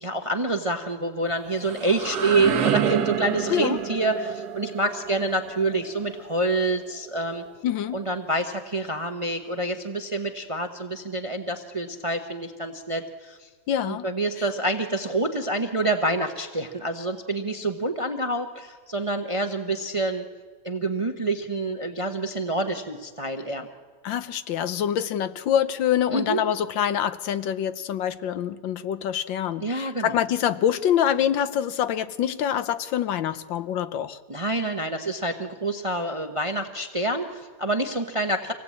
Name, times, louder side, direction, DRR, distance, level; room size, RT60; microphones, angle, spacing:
voice 1, 0.0-7.4 7.9-13.5 13.8-20.2 20.6-23.7 26.1-26.4 29.6-30.2 34.3-38.5, right 2 dB, 30° right, 5 dB, 0.6 m, -27 dB
sound 1, 1.3-7.1, right 9 dB, 60° right, 1.4 m, -29 dB
voice 2, 7.6-8.0 13.7-14.1 24.0-34.2, left 9 dB, 90° left, 12 dB, 1.6 m, -25 dB
25.5 x 17.5 x 8.4 m, 1.5 s
omnidirectional pair, 2.0 m